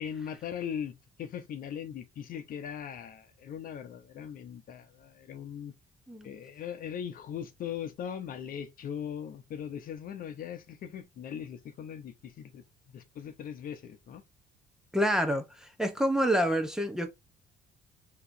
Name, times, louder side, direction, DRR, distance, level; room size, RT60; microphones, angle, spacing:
voice 1, 0.0-5.7 6.2-12.6 12.9-14.2, left 8 dB, 55° left, 0.9 m, -39 dB
voice 2, 14.9-17.1, equal, 5° right, 0.9 m, -28 dB
4.9 x 3.0 x 2.7 m
cardioid pair, 110°, 17 cm